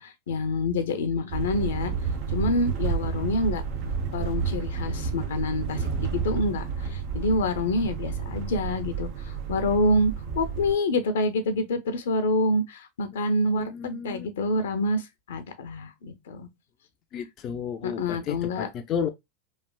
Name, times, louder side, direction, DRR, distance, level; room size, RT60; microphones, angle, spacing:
voice 1, 0.0-1.9 2.3-3.6 4.1-16.5 17.8-18.7, left 1 dB, 80° left, 0.6 m, -27 dB
sound 1, 1.3-10.7, right 6 dB, 55° right, 0.7 m, -30 dB
voice 2, 13.6-14.3 17.1-19.1, left 7 dB, 40° left, 0.4 m, -32 dB
3.2 x 2.4 x 2.2 m
hypercardioid pair, 110°, 0 cm